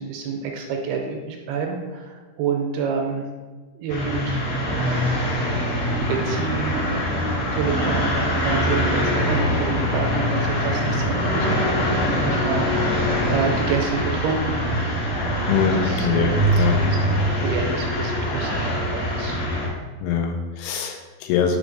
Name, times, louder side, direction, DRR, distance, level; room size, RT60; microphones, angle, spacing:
voice 1, 0.0-3.3 3.8-5.2 5.6-14.8 15.6-17.0 17.4-19.4, right 5 dB, 80° right, 2 dB, 2.4 m, -29 dB
sound 1, 3.9-19.7, equal, 60° left, 1.4 m, -23 dB
voice 2, 15.5-16.8 20.0-21.6, left 6 dB, 90° left, 3 dB, 2.7 m, -23 dB
6.2 x 3.2 x 5.2 m, 1.3 s
omnidirectional pair, 4.5 m